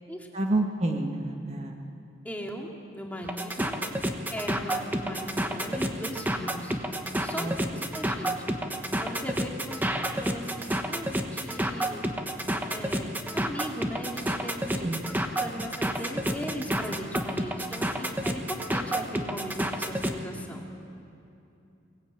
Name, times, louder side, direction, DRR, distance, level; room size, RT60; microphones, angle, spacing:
voice 1, 0.3-1.7 7.4-7.6 14.8-15.0, right 2 dB, 30° right, 2 dB, 1.4 m, -28 dB
voice 2, 2.2-3.8 4.3-6.8 7.2-8.5 9.0-9.9 10.2-12.0 12.7-13.1 13.3-20.7, equal, 10° left, 0 dB, 2.3 m, -38 dB
sound 1, 3.2-20.2, right 1 dB, 10° right, 1.1 m, -30 dB
23.0 x 19.0 x 8.9 m, 2.7 s
head